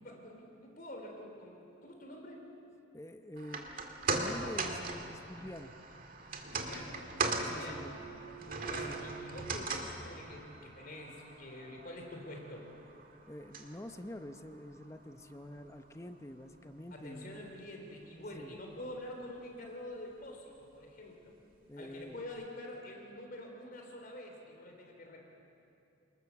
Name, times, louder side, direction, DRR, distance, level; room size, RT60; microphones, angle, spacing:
voice 1, 0.0-2.5 6.4-7.1 7.4-7.9 8.6-12.7 16.9-21.3 21.8-25.2, left 1 dB, 45° left, 2 dB, 3.7 m, -47 dB
voice 2, 2.9-3.8 4.1-5.8 7.4-7.9 8.4-9.0 13.3-17.4 18.3-18.6 21.7-22.2, left 1 dB, 15° left, 7 dB, 0.8 m, -47 dB
sound 1, 3.4-15.7 16.1-16.2, right 3 dB, 45° right, 2.1 m, -40 dB
28.0 x 20.0 x 7.2 m, 2.7 s
head